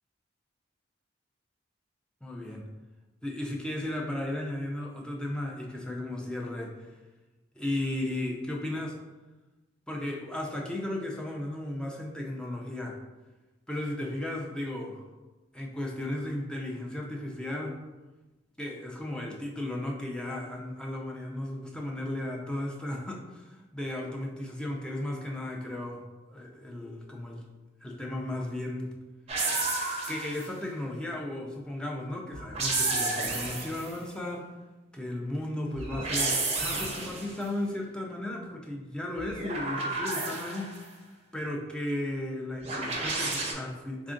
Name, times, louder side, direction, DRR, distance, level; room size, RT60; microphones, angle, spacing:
voice 1, 2.2-2.6 3.2-6.9 7.5-8.9 9.9-13.0 13.7-15.0 15.5-17.8 18.6-26.0 26.3-27.4 27.8-28.9 30.1-34.5 34.9-40.9 41.3-44.1, left 1 dB, 5° left, -1 dB, 0.4 m, -35 dB
sound 1, 29.3-30.6 32.3-34.0 35.8-37.4 39.2-40.8 42.6-43.5, right 3 dB, 35° right, 0.7 m, -31 dB
3.5 x 2.4 x 3.7 m, 1.1 s
head